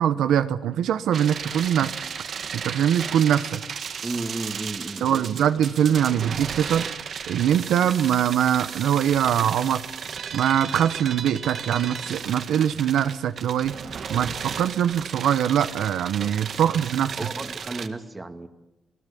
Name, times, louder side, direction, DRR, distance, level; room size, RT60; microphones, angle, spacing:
voice 1, 0.0-1.9 2.5-3.6 5.0-6.9 7.3-9.8 10.3-13.8 14.1-17.1, right 9 dB, 85° right, 1.0 m, -22 dB
sound 1, 1.1-17.9, right 7 dB, 60° right, 1.8 m, -35 dB
voice 2, 4.0-5.2 16.2-16.8 17.2-18.5, right 2 dB, 20° right, 2.3 m, -34 dB
29.5 x 19.0 x 8.6 m
cardioid pair, 100°, 0 cm